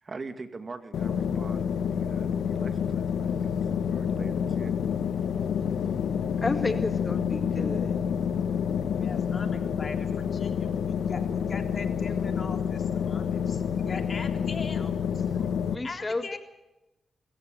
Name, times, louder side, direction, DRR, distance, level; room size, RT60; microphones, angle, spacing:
voice 1, 0.0-3.6 3.9-4.7, right 3 dB, 45° right, 9 dB, 2.3 m, -43 dB
sound 1, 0.9-15.8, left 7 dB, 90° left, 1.2 m, -28 dB
voice 2, 6.4-7.9 15.7-16.4, left 2 dB, 35° left, 9 dB, 2.0 m, -31 dB
voice 3, 8.9-15.5 15.8-16.4, left 4 dB, 50° left, 6 dB, 3.5 m, -41 dB
25.5 x 15.0 x 9.2 m, 0.95 s
cardioid pair, 60°, 0 cm